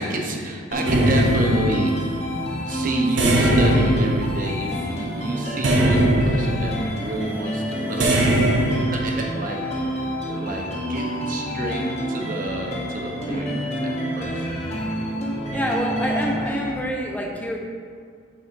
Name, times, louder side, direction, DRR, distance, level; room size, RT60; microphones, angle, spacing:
voice 1, 0.0-2.1 2.7-9.7 10.0-13.5 13.8-14.6, right 1 dB, 40° right, 1 dB, 0.8 m, -29 dB
sound 1, 0.7-16.7, equal, 30° left, 1.0 m, -28 dB
sound 2, 0.8-2.1 3.2-4.8 5.6-6.8 8.0-8.9, right 1 dB, 65° right, 0.9 m, -20 dB
voice 2, 13.3-13.6 15.5-17.6, equal, 10° left, -1 dB, 0.6 m, -27 dB
8.2 x 6.6 x 2.6 m, 2.1 s
head